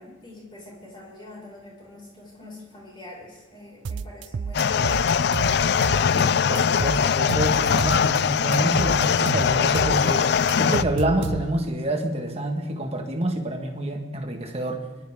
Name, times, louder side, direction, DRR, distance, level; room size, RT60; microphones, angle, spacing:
voice 1, 0.0-5.1, left 1 dB, 25° left, -4 dB, 5.5 m, -44 dB
sound 1, 3.8-6.2 6.5-8.2 8.5-11.7, right 5 dB, 60° right, 0.4 m, -31 dB
sound 2, 4.5-10.8, left 7 dB, 55° left, 0.3 m, -21 dB
voice 2, 6.1-14.8, right 1 dB, 30° right, 3 dB, 1.6 m, -27 dB
24.0 x 12.5 x 3.7 m, 1.2 s
head